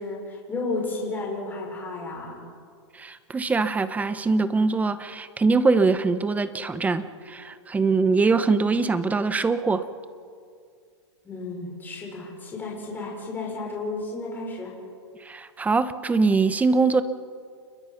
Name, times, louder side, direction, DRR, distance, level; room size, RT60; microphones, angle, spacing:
voice 1, 0.0-2.5 11.2-14.7, left 3 dB, 15° left, -2 dB, 5.7 m, -33 dB
voice 2, 2.9-9.9 15.2-17.0, right 4 dB, 10° right, 12 dB, 1.0 m, -23 dB
29.0 x 22.0 x 5.8 m, 2.2 s
hypercardioid pair, 130°, 15 cm